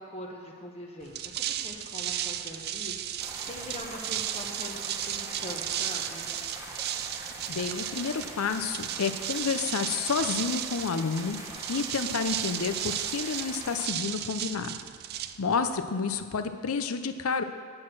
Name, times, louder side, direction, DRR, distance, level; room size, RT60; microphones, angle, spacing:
voice 1, 0.0-6.3, left 1 dB, 30° left, -1 dB, 0.9 m, -43 dB
sound 1, 1.0-15.8, right 11 dB, 45° right, 0.4 m, -35 dB
sound 2, 3.2-13.9, right 1 dB, 15° right, 1.1 m, -43 dB
voice 2, 7.5-11.4 11.7-14.8 15.4-17.4, left 5 dB, 90° left, 9 dB, 0.6 m, -30 dB
9.7 x 6.4 x 6.1 m, 2.1 s
head